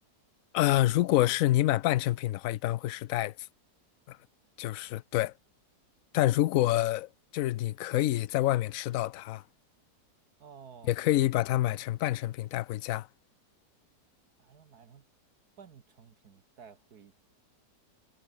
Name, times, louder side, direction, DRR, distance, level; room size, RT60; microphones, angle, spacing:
voice 1, 0.5-3.3 4.1-4.2 4.6-5.3 6.1-9.4 10.9-13.1, left 15 dB, 75° left, 0.7 m, -27 dB
voice 2, 10.4-10.9 14.4-15.1 15.6-17.1, right 7 dB, 60° right, 1.8 m, -53 dB
omnidirectional pair, 1.9 m